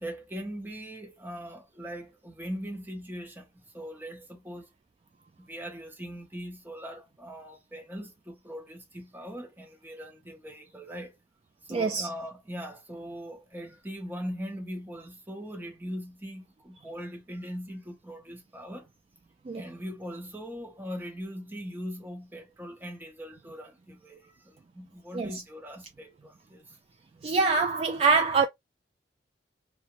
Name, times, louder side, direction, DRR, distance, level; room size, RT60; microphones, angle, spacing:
voice 1, 0.0-4.7 5.4-11.2 11.7-18.9 19.5-26.8, equal, 10° right, 0.8 m, -40 dB
voice 2, 11.7-12.1 19.5-19.6 25.1-25.3 27.2-28.5, right 4 dB, 35° right, 0.3 m, -24 dB
2.8 x 2.1 x 2.9 m
head